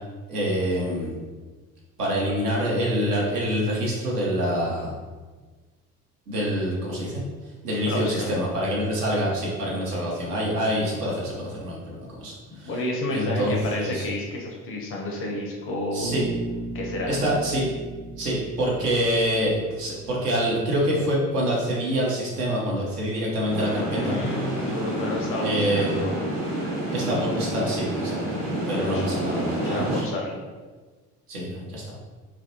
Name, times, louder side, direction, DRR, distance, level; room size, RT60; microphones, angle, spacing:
voice 1, 0.3-1.1 2.0-5.0 6.3-7.2 7.6-12.7 13.1-14.0 15.9-16.3 17.1-17.7 18.2-24.2 25.4-25.9 26.9-28.4 28.7-30.1 31.3-31.9, equal, 75° right, -4 dB, 0.8 m, -26 dB
voice 2, 7.9-8.3 12.6-16.1 16.7-17.1 23.9-26.2 28.6-29.0 29.6-30.4, left 2 dB, 30° left, -1 dB, 0.4 m, -30 dB
Bass guitar, 16.0-20.1, right 2 dB, 25° right, 0.5 m, -36 dB
sound 1, 23.5-30.0, right 1 dB, 50° right, 0.9 m, -28 dB
2.4 x 2.0 x 2.8 m, 1.4 s
figure-of-eight pair, 55°, 47 cm